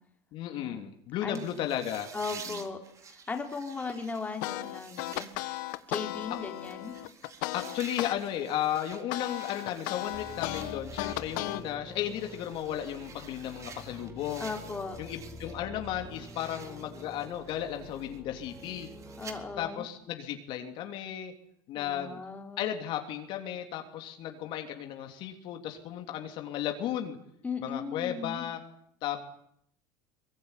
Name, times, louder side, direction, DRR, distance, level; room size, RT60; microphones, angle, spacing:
voice 1, 0.3-2.1 2.5-2.6 7.5-14.5 15.0-18.9 19.6-21.3 21.7-22.2 22.6-27.2 27.6-28.6 29.0-29.2, left 11 dB, 55° left, 5 dB, 3.2 m, -34 dB
sound 1, 1.3-15.6 15.9-19.3, right 6 dB, 30° right, 3.8 m, -50 dB
voice 2, 2.1-5.3 5.9-6.9 14.4-15.0 19.2-19.8 21.7-22.7 27.4-28.5, left 4 dB, 15° left, 3 dB, 4.0 m, -37 dB
sound 2, 4.4-8.2 8.5-11.6, left 18 dB, 80° left, 1.5 m, -35 dB
sound 3, 10.1-19.7, left 1 dB, 10° right, 3.6 m, -47 dB
23.0 x 22.5 x 10.0 m, 0.70 s
supercardioid pair, 135°, 10 cm